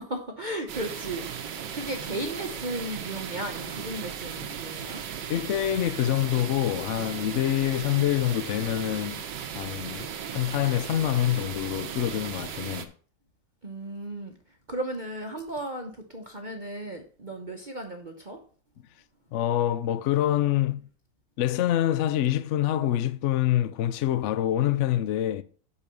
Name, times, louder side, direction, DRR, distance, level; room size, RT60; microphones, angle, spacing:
voice 1, 0.0-5.0 13.6-14.3 14.7-18.4, right 1 dB, 35° right, 0.8 m, -35 dB
sound 1, 0.7-12.9, right 8 dB, 80° right, 1.6 m, -37 dB
voice 2, 5.3-9.2 9.5-12.9 19.3-20.9 21.4-25.4, left 12 dB, 90° left, 0.6 m, -26 dB
6.3 x 5.7 x 6.9 m
omnidirectional pair, 1.9 m